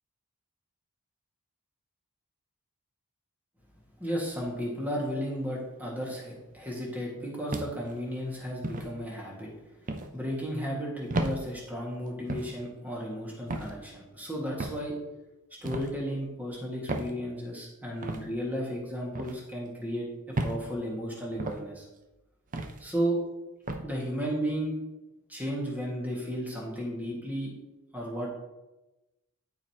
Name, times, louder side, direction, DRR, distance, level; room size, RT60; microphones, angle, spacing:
voice 1, 4.0-9.5 10.1-15.0 15.6-20.1 20.4-21.8 22.8-23.2 23.8-24.7 25.3-27.5 27.9-28.3, equal, 5° right, -4 dB, 1.8 m, -34 dB
sound 1, 7.5-8.0 8.6-8.9 9.9-10.1 11.1-11.4 12.3-12.5 13.5-13.7 14.6-14.8 15.6-15.9 16.9-17.1 18.0-18.2 19.1-19.4 20.3-20.6 21.4-21.6 22.5-22.8 23.7-23.9, right 2 dB, 35° right, 0.6 m, -33 dB
13.0 x 4.8 x 2.9 m, 1.0 s
head